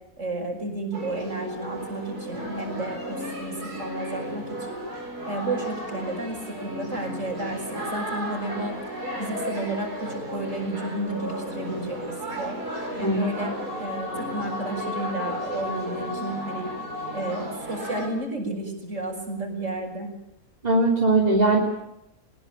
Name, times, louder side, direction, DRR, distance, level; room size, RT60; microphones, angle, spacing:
voice 1, 0.2-4.8 5.3-8.8 9.2-12.6 13.0-16.7 17.1-20.1, right 1 dB, 50° right, 4 dB, 6.4 m, -32 dB
sound 1, 0.9-18.1, equal, 85° right, 6.1 m, -34 dB
voice 2, 20.6-21.6, right 2 dB, 25° right, -2 dB, 3.5 m, -20 dB
23.0 x 21.0 x 8.8 m, 0.87 s
omnidirectional pair, 1.6 m